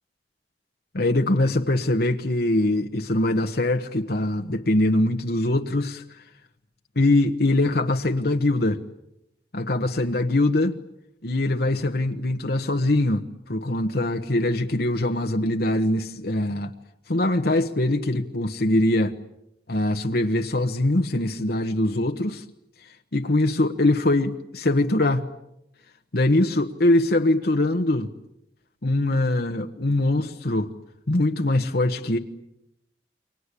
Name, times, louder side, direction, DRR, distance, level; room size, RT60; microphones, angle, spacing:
voice 1, 0.9-6.0 6.9-8.8 9.5-10.8 11.2-16.7 17.1-19.1 19.7-22.4 23.1-25.3 26.1-28.1 28.8-30.7 31.1-32.2, left 1 dB, 60° left, 1.3 m, -22 dB
29.5 x 24.0 x 8.4 m
head